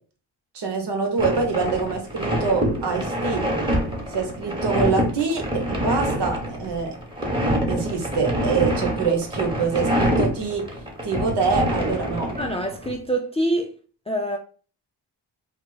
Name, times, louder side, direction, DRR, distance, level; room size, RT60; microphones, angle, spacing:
voice 1, 0.5-3.5 4.1-7.0 7.7-10.6 11.0-12.3, right 5 dB, 60° right, 1.0 m, -25 dB
sound 1, 1.2-12.9, equal, 10° right, 1.2 m, -26 dB
voice 2, 12.4-13.7 14.1-14.4, right 1 dB, 15° left, 0.3 m, -25 dB
2.3 x 2.1 x 3.9 m
supercardioid pair, 45°, 48 cm